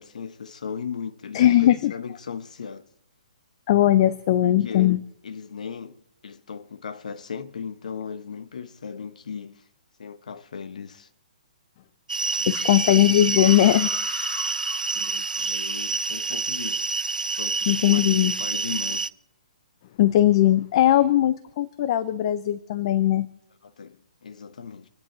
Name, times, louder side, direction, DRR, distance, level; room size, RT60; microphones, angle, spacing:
voice 1, 0.0-2.9 4.4-5.0 5.2-9.6 10.0-11.1 12.4-12.7 14.9-16.9 17.4-19.1 23.6-24.9, left 6 dB, 65° left, 1.1 m, -37 dB
voice 2, 1.3-1.9 3.7-5.0 12.5-13.9 17.7-18.3 20.0-23.3, left 13 dB, 45° left, 0.7 m, -19 dB
sound 1, 12.1-19.1, right 3 dB, 90° right, 0.5 m, -27 dB
sound 2, 12.5-16.2, left 4 dB, 20° left, 2.3 m, -40 dB
27.0 x 10.0 x 4.0 m
figure-of-eight pair, 130°, 4 cm